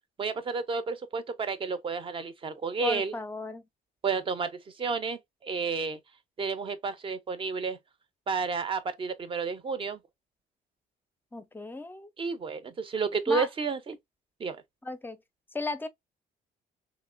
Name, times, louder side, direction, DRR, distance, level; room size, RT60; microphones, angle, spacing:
voice 1, 0.2-3.2 4.0-6.0 6.4-7.8 8.3-10.0 12.2-14.0 14.4-14.6, right 5 dB, 30° right, 0.6 m, -31 dB
voice 2, 2.8-3.6 11.3-12.1 13.3-13.5 14.8-15.2 15.5-15.9, left 2 dB, 10° left, 0.5 m, -35 dB
3.0 x 2.8 x 2.5 m
cardioid pair, 110°, 17 cm